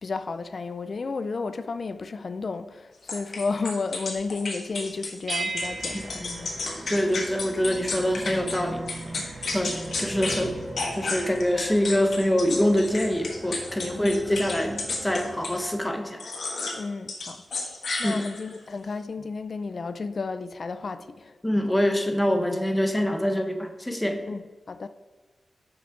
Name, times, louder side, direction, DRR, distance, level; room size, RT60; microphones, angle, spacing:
voice 1, 0.0-6.5 13.9-14.2 16.8-17.4 18.0-21.4 24.3-24.9, left 4 dB, 45° left, 0.4 m, -32 dB
sound 1, 3.1-8.6 8.9-10.4 10.7-15.6 16.2-16.8 17.1-18.6, left 3 dB, 65° left, 1.4 m, -32 dB
sound 2, 5.3-7.5, right 3 dB, 40° right, 1.1 m, -35 dB
sound 3, 5.4-16.0, right 1 dB, 20° right, 0.8 m, -41 dB
voice 2, 5.9-6.5 6.9-8.8 9.5-10.6 10.9-16.2 18.0-18.3 21.4-24.2, equal, 10° left, 0.8 m, -25 dB
6.1 x 5.8 x 4.6 m
wide cardioid pair, 140°, 0 cm